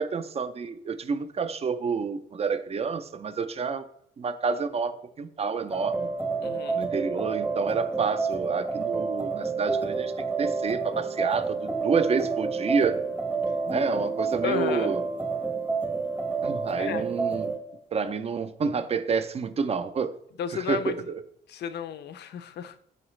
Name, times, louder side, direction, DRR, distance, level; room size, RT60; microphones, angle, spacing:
voice 1, 0.0-3.8 4.2-6.1 6.8-10.1 10.4-13.0 13.7-15.0 16.4-17.6 17.9-20.1 20.5-21.2, right 5 dB, 30° right, 11 dB, 0.4 m, -29 dB
sound 1, 5.7-17.6, right 4 dB, 10° right, 0.8 m, -29 dB
voice 2, 6.4-6.8 14.4-14.9 16.8-17.1 20.4-21.0 21.5-22.8, left 9 dB, 60° left, 12 dB, 0.4 m, -32 dB
3.9 x 3.8 x 3.1 m, 0.69 s
cardioid pair, 90°, 20 cm